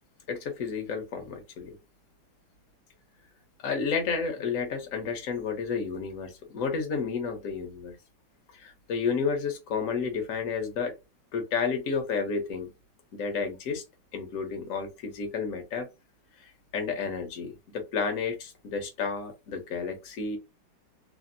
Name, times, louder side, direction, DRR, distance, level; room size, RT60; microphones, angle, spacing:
voice 1, 0.3-1.8 3.6-8.0 8.6-10.9 11.3-12.7 13.1-13.8 14.1-15.9 16.7-20.4, left 5 dB, 55° left, 1.0 m, -31 dB
3.3 x 2.0 x 2.5 m
omnidirectional pair, 2.1 m